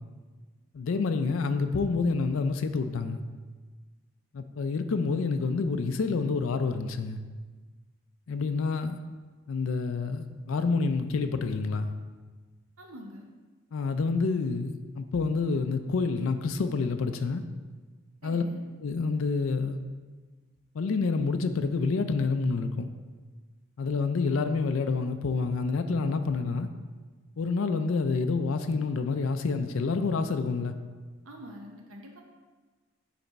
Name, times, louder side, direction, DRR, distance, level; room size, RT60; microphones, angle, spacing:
voice 1, 0.7-3.2 4.3-7.2 8.3-9.0 9.5-11.9 13.7-17.4 18.2-18.4 18.8-19.8 20.7-22.9 23.8-26.7 27.4-30.7, left 4 dB, 70° left, 8 dB, 0.4 m, -28 dB
voice 2, 12.8-13.3 18.2-18.6 31.2-32.2, equal, 80° right, 1 dB, 0.8 m, -45 dB
9.0 x 3.4 x 4.1 m, 1.4 s
head